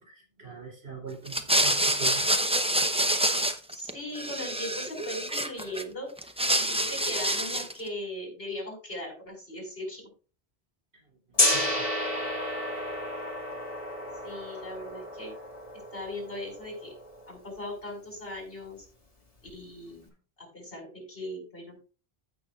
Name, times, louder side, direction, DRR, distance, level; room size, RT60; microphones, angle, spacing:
voice 1, 0.0-2.3 11.5-11.9, right 5 dB, 80° right, -1 dB, 3.7 m, -41 dB
sound 1, 1.3-3.9 4.1-5.8 6.2-7.8, right 1 dB, 5° right, 0.6 m, -26 dB
voice 2, 3.7-6.1 6.5-10.1 14.2-15.3 15.9-16.9 17.3-18.9 19.4-21.8, left 1 dB, 65° left, 1 dB, 5.2 m, -39 dB
Gong, 11.4-17.3, left 1 dB, 35° left, 2.2 m, -31 dB
15.0 x 6.1 x 2.4 m, 0.36 s
omnidirectional pair, 1.0 m